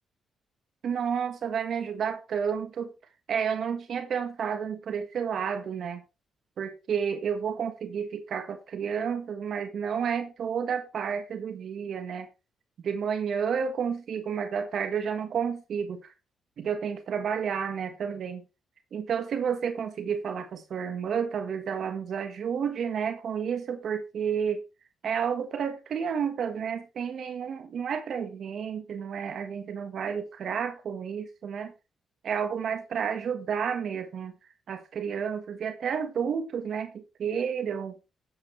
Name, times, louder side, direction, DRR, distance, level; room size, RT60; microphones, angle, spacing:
voice 1, 0.8-2.9 3.3-6.0 6.6-12.3 12.8-16.1 16.6-18.4 18.9-24.6 25.0-31.7 32.2-34.3 34.7-38.0, right 7 dB, 65° right, 1.5 m, -31 dB
11.0 x 8.7 x 3.3 m
cardioid pair, 70°, 0 cm